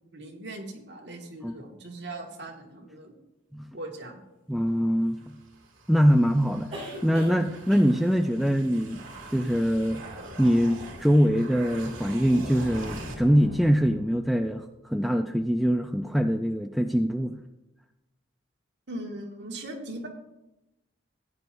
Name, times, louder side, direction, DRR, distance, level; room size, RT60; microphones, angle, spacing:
voice 1, 0.1-3.1 3.7-4.2 18.9-20.1, right 1 dB, 55° right, 0 dB, 1.8 m, -39 dB
voice 2, 4.5-5.2 5.9-6.7 7.0-9.0 9.3-10.0 10.4-17.4, equal, ahead, 5 dB, 0.4 m, -23 dB
sound 1, 4.6-4.7 6.7-7.4 7.7-8.0 10.0-10.1 10.3-10.5, equal, 30° right, 4.1 m, -40 dB
sound 2, 5.1-14.4, right 1 dB, 75° right, 2.3 m, -42 dB
16.0 x 9.6 x 2.6 m, 0.96 s
head